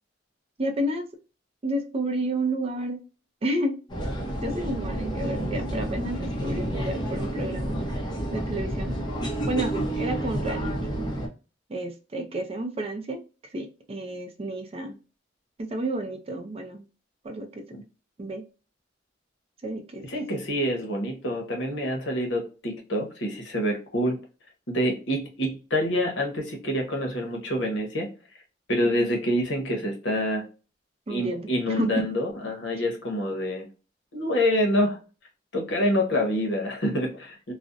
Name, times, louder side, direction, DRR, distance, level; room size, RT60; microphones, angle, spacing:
voice 1, 0.6-1.1 1.6-3.0 3.4-3.8 4.4-9.0 9.5-10.9 11.7-13.2 13.5-15.0 15.6-16.8 17.2-17.6 18.2-18.4 19.6-20.0 28.8-29.1 31.1-32.0, right 1 dB, 30° right, 5 dB, 0.4 m, -31 dB
sound 1, 3.9-11.3, right 1 dB, 25° left, 0.6 m, -30 dB
voice 2, 20.0-24.2 24.7-28.1 28.7-30.4 31.1-33.6 34.1-35.0 35.5-37.5, equal, 70° left, 2 dB, 0.8 m, -27 dB
2.5 x 2.0 x 2.4 m, 0.33 s
head